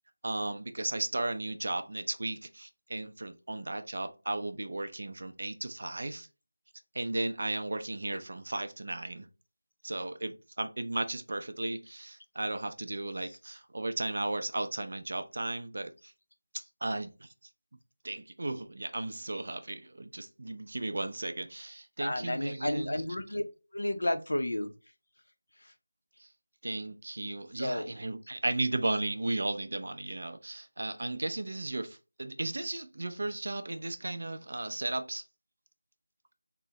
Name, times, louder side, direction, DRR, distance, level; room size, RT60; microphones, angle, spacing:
voice 1, 0.2-6.3 6.9-9.3 9.8-16.1 16.5-17.3 18.0-23.0 26.2-26.3 26.6-35.2, right 2 dB, 50° right, 0.4 m, -35 dB
voice 2, 22.0-23.4 23.7-24.7 25.6-25.7 27.6-27.9, left 1 dB, 90° left, 0.5 m, -32 dB
3.7 x 2.0 x 2.7 m
figure-of-eight pair, 175°, 0 cm